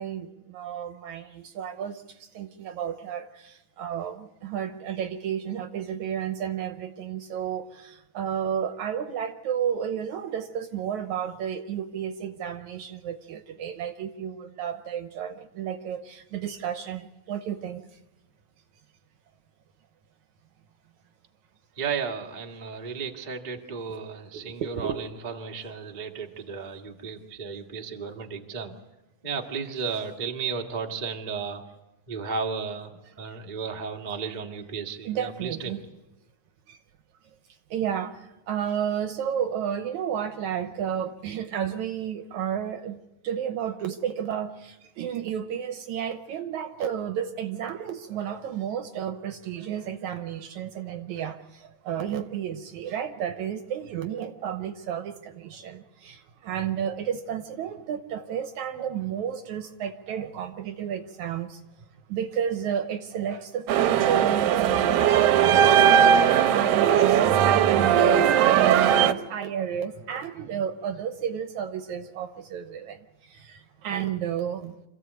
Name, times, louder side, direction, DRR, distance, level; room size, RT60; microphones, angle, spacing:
voice 1, 0.0-17.9 24.3-25.0 35.0-35.8 36.7-36.8 37.7-43.0 43.2-61.6 62.1-74.8, right 8 dB, 70° right, 8 dB, 2.1 m, -32 dB
voice 2, 21.8-28.7 29.2-31.6 32.1-32.9 33.2-35.8, right 5 dB, 25° right, 2 dB, 0.9 m, -34 dB
sound 1, 63.7-69.1, right 9 dB, 85° right, 2.7 m, -19 dB
26.5 x 15.5 x 8.2 m, 0.99 s
omnidirectional pair, 4.0 m